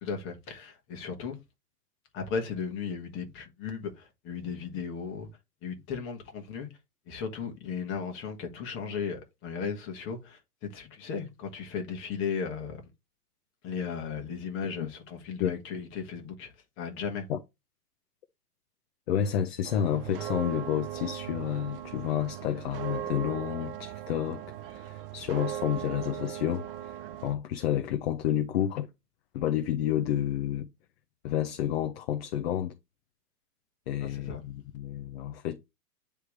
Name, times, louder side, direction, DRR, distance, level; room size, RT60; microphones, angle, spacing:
voice 1, 0.0-1.4 2.1-5.3 5.6-6.8 7.1-12.8 13.6-17.3 34.0-34.4, left 6 dB, 25° left, 1.6 m, -36 dB
voice 2, 19.1-24.4 24.7-28.9 29.3-30.7 31.2-32.7 33.9-35.6, left 10 dB, 40° left, 0.7 m, -30 dB
sound 1, 19.6-27.4, right 12 dB, 40° right, 0.6 m, -38 dB
9.3 x 3.4 x 3.2 m
hypercardioid pair, 135°, 47 cm